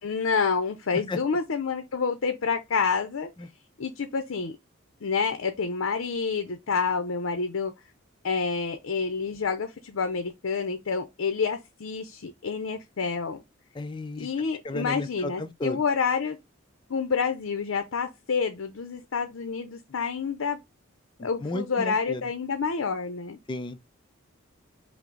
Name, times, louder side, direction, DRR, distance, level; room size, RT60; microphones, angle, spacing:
voice 1, 0.0-3.3 3.8-4.5 5.0-7.7 8.2-13.4 14.2-16.4 16.9-20.6 21.2-23.4, left 5 dB, 75° left, 0.6 m, -28 dB
voice 2, 13.7-14.3 14.6-15.8 21.4-22.2 23.5-23.9, left 2 dB, 25° left, 0.4 m, -33 dB
5.8 x 2.0 x 3.8 m
head